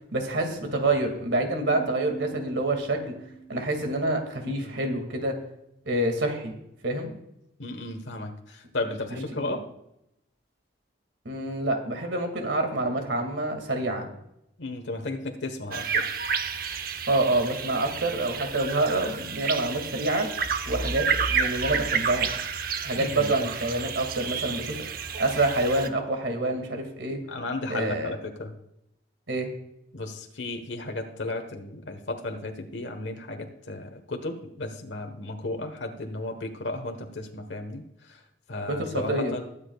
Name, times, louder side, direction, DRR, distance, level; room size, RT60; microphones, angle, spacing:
voice 1, 0.1-3.0 3.5-5.4 5.9-6.5 6.8-7.1 9.4-9.5 11.2-14.1 17.1-20.3 20.7-22.3 22.8-24.8 25.2-27.2 27.7-28.2 29.3-29.5 38.7-39.3, right 2 dB, 80° right, 4 dB, 2.3 m, -27 dB
Piano, 1.7-5.2, right 3 dB, 20° right, 4.0 m, -44 dB
voice 2, 4.4-4.8 7.6-9.7 14.6-16.0 23.0-23.5 27.3-28.5 29.9-37.8 38.1-38.2 38.5-39.4, left 2 dB, 80° left, 5 dB, 1.3 m, -34 dB
sound 1, 15.7-25.9, right 6 dB, 50° right, 0.8 m, -30 dB
sound 2, 20.4-23.2, equal, 10° left, 2.5 m, -37 dB
21.5 x 8.8 x 2.4 m, 0.81 s
head